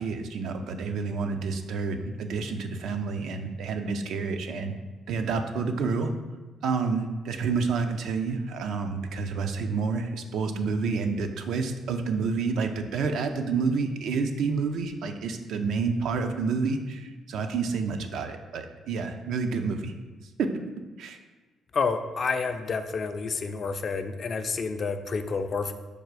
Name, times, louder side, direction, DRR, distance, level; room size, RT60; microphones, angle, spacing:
voice 1, 0.0-4.7 5.1-6.1 6.6-19.9 20.4-20.5 21.0-21.2, right 4 dB, 75° right, 6 dB, 0.4 m, -29 dB
voice 2, 21.7-25.7, left 4 dB, 45° left, 8 dB, 0.3 m, -29 dB
4.8 x 2.4 x 4.6 m, 1.2 s
cardioid pair, 90°, 0 cm